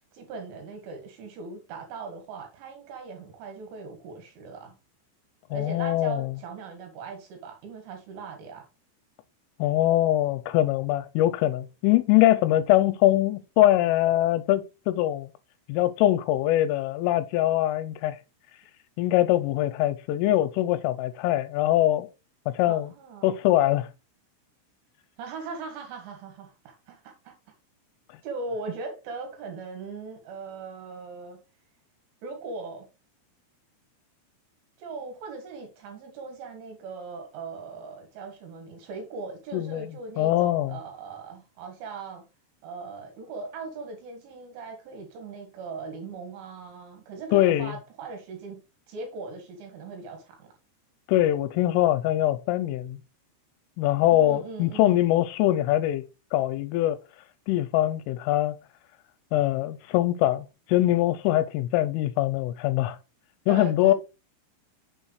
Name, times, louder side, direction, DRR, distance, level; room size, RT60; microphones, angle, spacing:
voice 1, 0.1-4.8 5.5-8.7 22.7-23.3 25.2-27.3 28.2-31.4 32.2-32.9 34.8-42.3 42.6-48.6 48.9-50.5 54.1-55.0 63.5-63.9, right 4 dB, 70° right, 4.1 m, -39 dB
voice 2, 5.5-6.3 9.6-15.3 15.7-18.2 19.0-22.1 22.5-22.9 23.2-23.9 39.5-39.9 40.2-40.7 47.3-47.7 51.1-53.0 53.8-56.0 56.3-57.0 57.5-58.5 59.3-63.0 63.5-63.9, left 14 dB, 80° left, 3.1 m, -23 dB
9.1 x 6.9 x 3.2 m
omnidirectional pair, 5.9 m